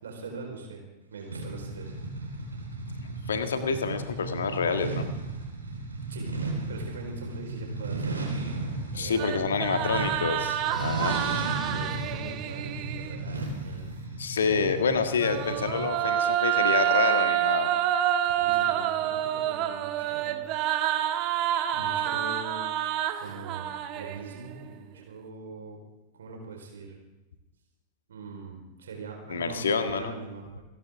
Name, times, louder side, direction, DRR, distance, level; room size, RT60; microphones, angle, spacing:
voice 1, 0.0-0.9 1.1-2.0 6.1-6.3 6.7-8.3 8.9-9.4 10.8-13.9 18.3-20.4 21.7-22.6 23.2-25.8 26.1-27.0 28.1-30.6, right 4 dB, 65° right, 1 dB, 4.4 m, -42 dB
sound 1, 1.3-16.0, right 2 dB, 80° right, 4.4 m, -35 dB
voice 2, 3.3-5.1 8.9-11.2 14.2-17.8 29.3-30.1, left 5 dB, 65° left, 8 dB, 1.6 m, -28 dB
sound 2, 9.2-13.2 15.0-24.5, right 12 dB, 40° right, 1.3 m, -28 dB
sound 3, 10.5-13.0, equal, 5° left, 2.6 m, -46 dB
29.5 x 11.0 x 3.6 m, 1.0 s
figure-of-eight pair, 90°, 0 cm